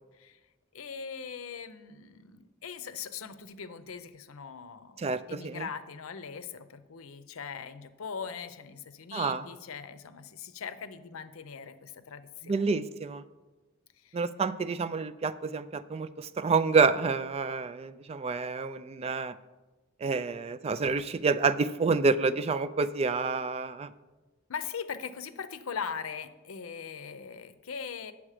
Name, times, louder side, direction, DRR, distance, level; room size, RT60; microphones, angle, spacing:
voice 1, 0.7-12.6 14.0-14.2 24.5-28.1, left 6 dB, 90° left, 12 dB, 0.6 m, -40 dB
voice 2, 5.0-5.7 9.1-9.5 12.4-13.2 14.1-19.4 20.0-23.9, right 4 dB, 30° right, 14 dB, 0.3 m, -28 dB
8.8 x 7.2 x 4.9 m, 1.2 s
head